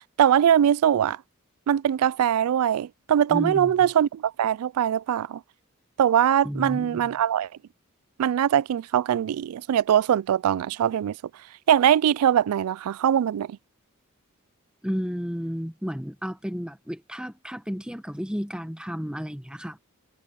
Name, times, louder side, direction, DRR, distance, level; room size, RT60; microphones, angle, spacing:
voice 1, 0.2-1.2 1.7-5.4 6.0-7.5 8.2-11.2 11.7-13.6, right 9 dB, 85° right, 0.3 m, -22 dB
voice 2, 3.3-3.7 6.4-7.1 14.8-19.8, equal, 5° right, 1.2 m, -32 dB
head